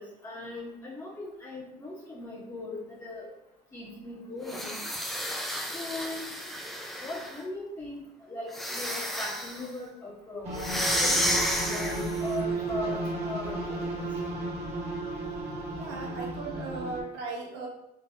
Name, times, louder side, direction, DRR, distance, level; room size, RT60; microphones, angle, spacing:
voice 1, 0.0-3.3 3.7-4.8 5.7-6.2 7.0-11.3 11.6-14.1, left 2 dB, 20° left, -9 dB, 1.3 m, -39 dB
sound 1, 4.4-7.4 8.5-9.7 10.6-12.3, equal, ahead, 0.6 m, -31 dB
sound 2, 10.4-17.0, right 2 dB, 40° right, 1.3 m, -33 dB
voice 2, 15.8-17.7, right 3 dB, 85° right, 0 dB, 1.1 m, -37 dB
4.1 x 3.8 x 2.8 m, 0.84 s
cardioid pair, 110°, 17 cm